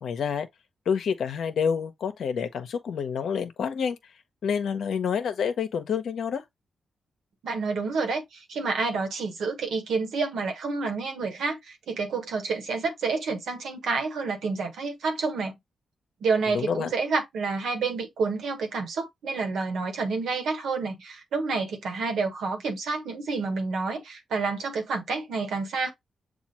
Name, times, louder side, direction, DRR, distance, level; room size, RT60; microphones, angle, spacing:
voice 1, 0.0-0.5 0.9-4.0 4.4-6.4 16.5-16.9, left 7 dB, 75° left, 0.8 m, -28 dB
voice 2, 7.4-15.5 16.2-25.9, right 4 dB, 80° right, 1.2 m, -29 dB
7.2 x 2.4 x 2.8 m
cardioid pair, 55°, 0 cm